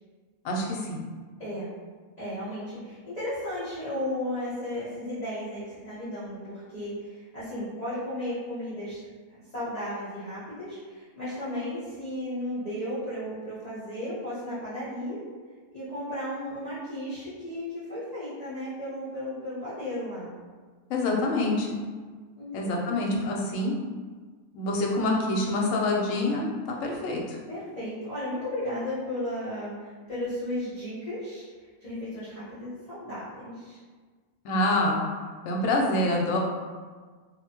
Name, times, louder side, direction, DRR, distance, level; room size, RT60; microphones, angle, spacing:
voice 1, 0.4-1.0 20.9-21.8 22.5-23.7 24.5-27.4 34.4-35.0 35.4-36.4, left 2 dB, 70° left, -1 dB, 0.9 m, -26 dB
voice 2, 1.4-1.7 2.2-9.0 9.3-15.2 15.7-20.4 22.4-23.0 27.5-31.5 31.8-33.8, left 1 dB, 35° left, -12 dB, 0.8 m, -34 dB
2.7 x 2.1 x 2.8 m, 1.5 s
omnidirectional pair, 1.5 m